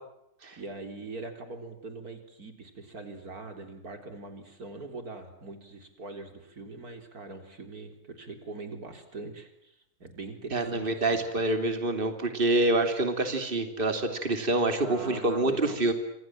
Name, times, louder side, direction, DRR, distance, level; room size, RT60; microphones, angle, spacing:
voice 1, 0.6-11.4 14.8-15.8, right 3 dB, 75° right, 6 dB, 4.3 m, -42 dB
voice 2, 10.5-15.9, right 2 dB, 35° right, 7 dB, 3.1 m, -26 dB
27.5 x 27.0 x 7.6 m, 0.80 s
omnidirectional pair, 1.6 m